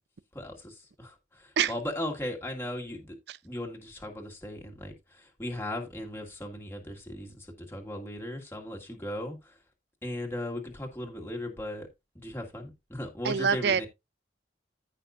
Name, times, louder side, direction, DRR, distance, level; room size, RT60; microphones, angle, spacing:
voice 1, 0.3-3.2 3.4-9.6 10.0-11.9 12.2-13.9, left 1 dB, 15° left, 1.9 m, -37 dB
voice 2, 13.2-13.9, right 6 dB, 65° right, 0.5 m, -25 dB
14.5 x 5.8 x 2.5 m
head